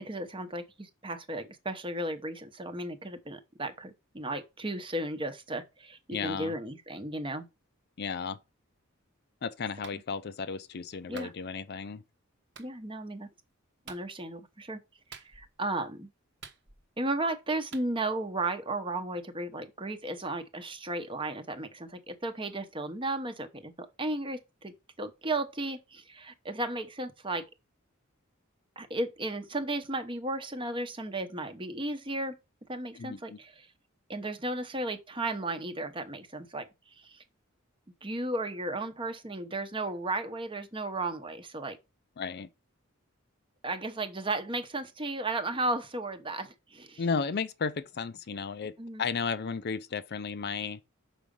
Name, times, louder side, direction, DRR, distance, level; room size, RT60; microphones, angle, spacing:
voice 1, 0.0-7.5 11.1-11.3 12.6-13.3 13.9-14.8 15.1-16.1 17.0-27.5 28.8-32.4 32.7-33.7 34.1-37.2 38.0-41.8 43.6-47.0 48.8-49.0, right 2 dB, 25° right, 0.9 m, -34 dB
voice 2, 6.1-6.5 8.0-8.4 9.4-12.0 32.9-33.4 42.2-42.5 47.0-50.8, left 5 dB, 50° left, 0.5 m, -34 dB
Clapping, 9.8-10.0 11.2-11.4 12.6-12.7 13.9-14.1 15.1-15.6 16.4-17.0 17.7-17.9, right 6 dB, 55° right, 1.0 m, -48 dB
6.2 x 4.9 x 5.3 m
head